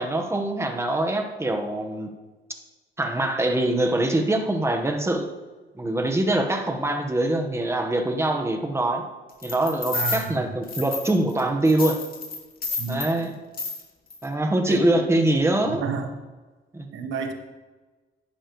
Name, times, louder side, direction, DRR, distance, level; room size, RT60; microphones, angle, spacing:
voice 1, 0.0-2.1 3.0-5.3 5.7-9.0 9.4-12.0 12.9-13.3 14.2-15.8 16.7-16.9, right 1 dB, 15° right, 5 dB, 1.3 m, -23 dB
sound 1, 9.4-10.2 10.7-11.4 11.6-13.1 13.5-13.8 14.1-14.2, left 4 dB, 45° left, 2.7 m, -30 dB
voice 2, 9.9-10.4 12.8-13.0 14.7-15.0 15.8-16.1 16.9-17.3, right 6 dB, 80° right, 6 dB, 1.2 m, -30 dB
11.5 x 9.8 x 3.2 m, 1.3 s
cardioid pair, 90°, 20 cm